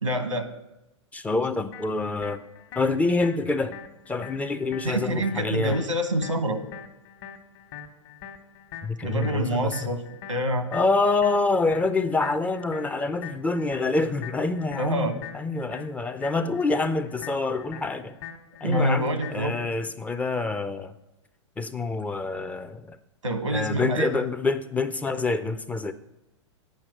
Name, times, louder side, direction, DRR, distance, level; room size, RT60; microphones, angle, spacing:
voice 1, 0.0-0.5 4.8-6.6 9.0-10.0 10.3-10.7 14.8-15.2 18.6-19.6 23.2-24.2, right 1 dB, 90° right, 10 dB, 1.1 m, -26 dB
voice 2, 1.1-2.4 2.8-3.7 4.1-5.8 8.8-9.7 10.7-18.2 18.6-20.9 21.6-23.0 23.5-25.9, left 3 dB, 10° left, 11 dB, 0.3 m, -26 dB
sound 1, 1.7-19.7, left 8 dB, 55° left, 1.2 m, -44 dB
9.2 x 5.8 x 6.4 m, 0.92 s
figure-of-eight pair, 105°, 16 cm